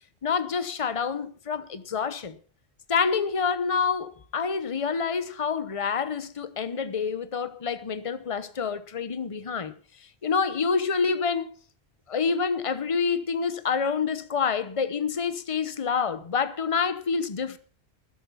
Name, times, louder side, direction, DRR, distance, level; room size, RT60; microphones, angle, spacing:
voice 1, 0.2-2.4 2.9-9.7 10.2-11.6 12.1-17.6, left 5 dB, 35° left, 0.9 m, -27 dB
13.0 x 11.5 x 5.6 m
omnidirectional pair, 1.1 m